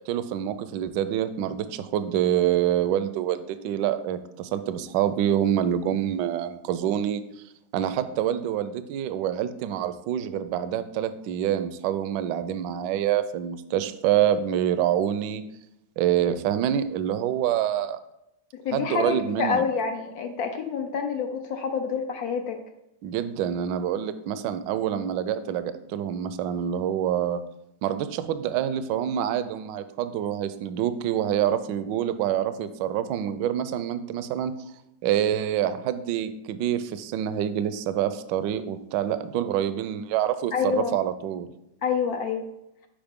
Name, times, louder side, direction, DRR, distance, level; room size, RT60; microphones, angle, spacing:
voice 1, 0.1-7.2 7.7-15.4 16.0-18.0 18.7-19.6 23.0-27.4 27.8-34.5 35.0-41.5, right 10 dB, 75° right, 12 dB, 1.1 m, -26 dB
voice 2, 18.5-22.6 40.5-41.0 41.8-42.5, left 6 dB, 65° left, 5 dB, 0.9 m, -27 dB
8.8 x 5.1 x 3.6 m, 0.86 s
omnidirectional pair, 2.1 m